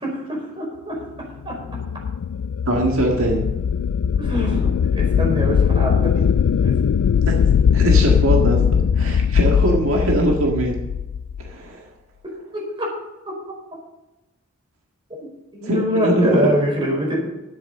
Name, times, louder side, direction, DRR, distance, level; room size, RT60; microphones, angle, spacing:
voice 1, 0.0-1.0 1.4-1.5 4.2-4.7 5.0-6.3 6.5-6.7 12.5-12.9 15.2-15.3 15.5-17.2, equal, 25° right, -2 dB, 4.9 m, -24 dB
sound 1, 1.4-11.5, left 7 dB, 90° left, 0.3 m, -19 dB
voice 2, 2.7-3.4 7.3-7.4 7.7-10.8 11.4-11.8 15.6-16.3, right 1 dB, 75° right, 0 dB, 1.9 m, -21 dB
12.0 x 8.1 x 6.7 m, 1.0 s
head